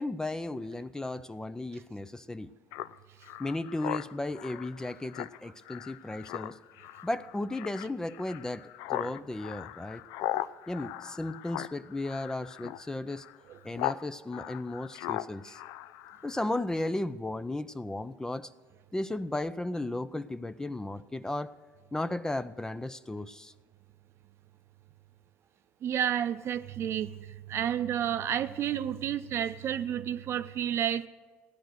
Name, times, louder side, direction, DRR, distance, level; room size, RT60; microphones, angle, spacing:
voice 1, 0.0-2.5 3.4-6.6 7.0-10.0 10.7-13.3 13.6-15.6 16.2-18.5 18.9-21.5 21.9-23.5, left 2 dB, 10° left, 13 dB, 0.5 m, -35 dB
Speech synthesizer, 2.7-14.0 14.3-16.5, left 15 dB, 80° left, 0.4 m, -39 dB
voice 2, 25.8-27.1 27.5-31.1, right 10 dB, 50° right, 12 dB, 0.6 m, -30 dB
16.0 x 10.0 x 6.4 m, 1.4 s
supercardioid pair, 90°, 5 cm